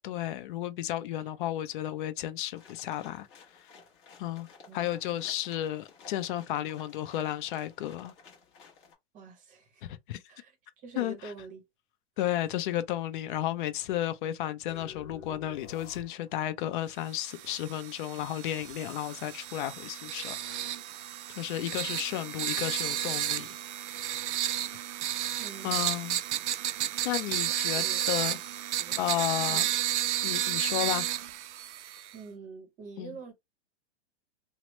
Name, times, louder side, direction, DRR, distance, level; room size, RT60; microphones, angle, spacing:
voice 1, 0.0-3.3 3.5-3.7 4.2-4.5 4.7-8.1 9.8-10.2 11.0-11.1 12.2-20.7 21.4-23.5 25.6-26.2 27.0-28.4 28.7-29.6 30.2-31.1 33.0-33.2, left 13 dB, 45° left, 0.5 m, -33 dB
sound 1, 2.5-8.9, left 5 dB, 30° left, 1.1 m, -55 dB
voice 2, 4.7-5.2 9.1-9.9 10.3-11.6 12.4-12.6 25.4-26.1 27.7-28.1 28.8-29.7 32.1-33.3, right 4 dB, 25° right, 0.8 m, -47 dB
sound 2, 14.7-16.6, left 5 dB, 85° left, 0.7 m, -48 dB
sound 3, 17.2-32.1, right 12 dB, 80° right, 0.5 m, -32 dB
2.9 x 2.0 x 3.0 m
hypercardioid pair, 130°, 34 cm